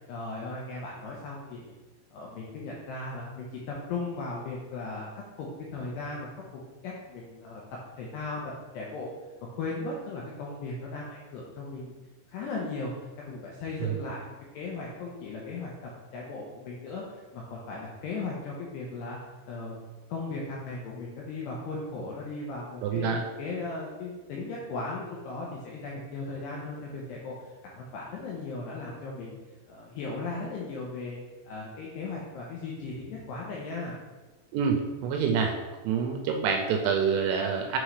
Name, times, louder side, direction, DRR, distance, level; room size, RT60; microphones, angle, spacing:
voice 1, 0.1-1.7 2.1-7.6 8.0-8.4 8.7-9.1 9.6-11.9 12.3-12.9 13.2-19.2 19.5-19.8 20.1-23.1 23.4-29.4 29.7-31.2 31.4-34.0, left 3 dB, 85° left, -4 dB, 2.4 m, -37 dB
voice 2, 22.8-23.2 34.5-35.5 35.8-37.8, right 6 dB, 85° right, 2 dB, 2.9 m, -27 dB
9.0 x 3.8 x 3.2 m, 1.2 s
omnidirectional pair, 5.7 m